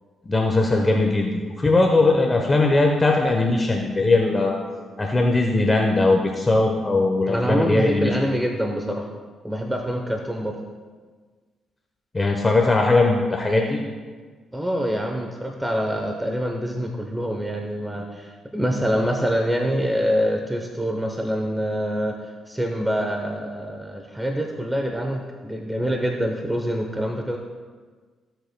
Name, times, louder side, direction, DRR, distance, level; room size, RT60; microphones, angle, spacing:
voice 1, 0.3-4.5 5.0-8.1 12.1-13.8, left 2 dB, 25° left, 1 dB, 0.9 m, -19 dB
voice 2, 7.3-9.1 9.4-10.6 14.5-22.2 22.5-27.4, equal, 10° right, 2 dB, 0.8 m, -25 dB
15.0 x 7.9 x 2.2 m, 1.5 s
cardioid pair, 90°, 0 cm